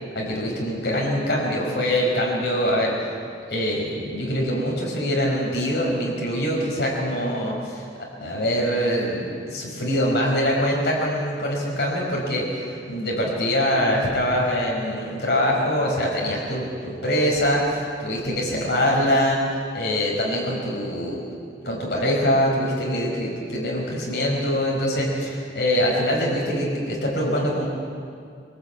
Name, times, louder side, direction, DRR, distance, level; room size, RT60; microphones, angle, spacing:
voice 1, 0.1-2.9 3.5-7.8 8.2-9.2 9.5-19.4 19.7-21.2 21.6-27.7, equal, 70° left, -3 dB, 5.8 m, -23 dB
25.0 x 18.5 x 8.6 m, 2.3 s
head